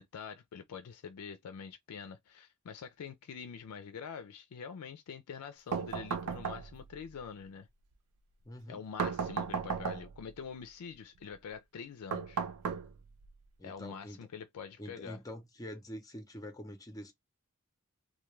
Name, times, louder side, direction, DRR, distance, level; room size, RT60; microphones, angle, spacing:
voice 1, 0.0-7.7 8.7-12.4 13.6-15.2, left 6 dB, 80° left, 0.4 m, -45 dB
sound 1, 5.7-7.0 9.0-10.3 12.1-13.3, right 6 dB, 80° right, 0.4 m, -35 dB
voice 2, 8.4-8.8 13.6-14.3 14.8-17.1, equal, 15° left, 0.6 m, -45 dB
2.2 x 2.2 x 3.0 m
head